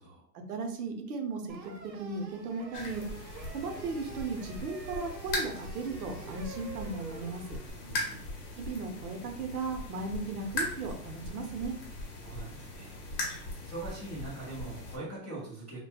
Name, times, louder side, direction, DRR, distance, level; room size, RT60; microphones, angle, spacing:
voice 1, 0.3-1.5 1.8-3.0 3.5-7.4 8.6-11.7, right 3 dB, 65° right, 4 dB, 0.7 m, -36 dB
sound 1, 1.5-7.7, right 3 dB, 90° right, 0.9 m, -47 dB
sound 2, 2.7-15.0, left 2 dB, 35° left, 0.8 m, -39 dB
voice 2, 7.8-8.3 12.2-13.0 13.6-15.8, right 2 dB, 5° left, -13 dB, 0.4 m, -42 dB
2.7 x 2.2 x 2.8 m, 0.62 s
hypercardioid pair, 130°, 50 cm